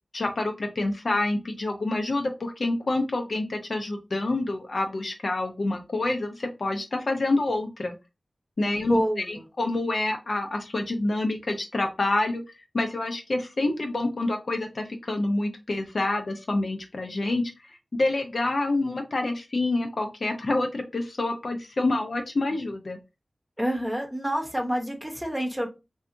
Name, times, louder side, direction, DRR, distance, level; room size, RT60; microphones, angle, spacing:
voice 1, 0.1-7.9 8.6-9.0 9.3-12.4 12.7-17.4 17.9-23.0, left 2 dB, 70° left, 0.6 m, -27 dB
voice 2, 8.7-9.4 23.6-25.7, equal, 10° right, 0.8 m, -28 dB
2.7 x 2.3 x 2.5 m
cardioid pair, 45°, 0 cm